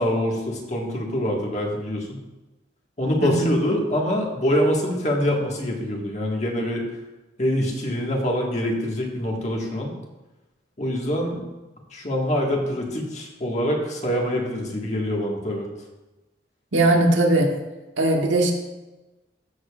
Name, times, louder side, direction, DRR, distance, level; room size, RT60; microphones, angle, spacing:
voice 1, 0.0-2.2 3.0-6.9 7.4-9.9 10.8-11.4 11.9-15.7, equal, 40° left, -1 dB, 1.6 m, -25 dB
voice 2, 3.2-3.5 16.7-17.5 18.0-18.5, right 2 dB, 85° right, 1 dB, 1.4 m, -19 dB
13.5 x 6.8 x 2.4 m, 1.1 s
head